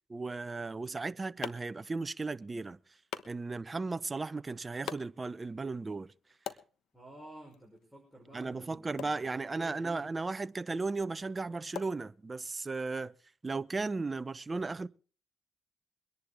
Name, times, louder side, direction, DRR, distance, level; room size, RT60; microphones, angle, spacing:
voice 1, 0.1-2.8 3.3-6.1 8.3-13.1 13.4-14.9, right 3 dB, 25° right, 0.7 m, -35 dB
sound 1, 0.7-12.7, left 8 dB, 75° left, 1.1 m, -49 dB
voice 2, 6.9-10.0, right 1 dB, 10° left, 5.4 m, -52 dB
23.5 x 10.5 x 3.4 m
cardioid pair, 90°, 0 cm